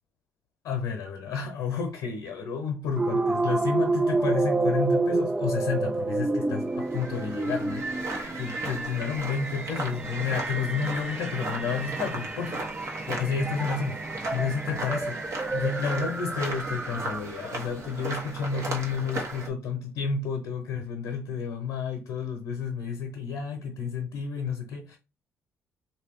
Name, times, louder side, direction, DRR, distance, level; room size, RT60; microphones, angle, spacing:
voice 1, 0.6-12.6 13.1-25.0, left 6 dB, 75° left, 0.8 m, -31 dB
sound 1, 3.0-17.5, right 3 dB, 15° right, 0.3 m, -30 dB
sound 2, 6.7-19.5, right 2 dB, 55° right, 1.2 m, -36 dB
2.9 x 2.7 x 3.5 m
hypercardioid pair, 50°, 6 cm